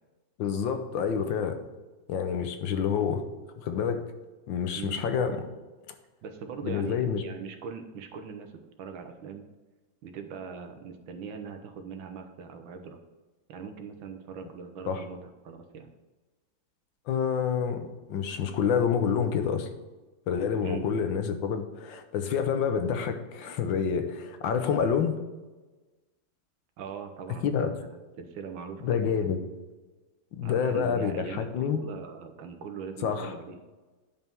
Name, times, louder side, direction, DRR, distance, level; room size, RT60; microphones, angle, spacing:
voice 1, 0.4-1.6 2.1-3.3 3.6-4.0 4.5-5.5 5.9-6.0 6.6-7.2 14.9-15.0 17.1-19.7 20.3-25.2 27.4-27.7 28.8-29.4 30.3-31.8 33.0-33.4, left 7 dB, 80° left, 8 dB, 1.6 m, -28 dB
voice 2, 6.2-9.5 10.0-13.0 13.5-15.9 20.6-20.9 26.8-29.3 30.4-33.6, right 6 dB, 85° right, 6 dB, 1.7 m, -41 dB
9.7 x 5.5 x 4.5 m, 1.2 s
omnidirectional pair, 2.1 m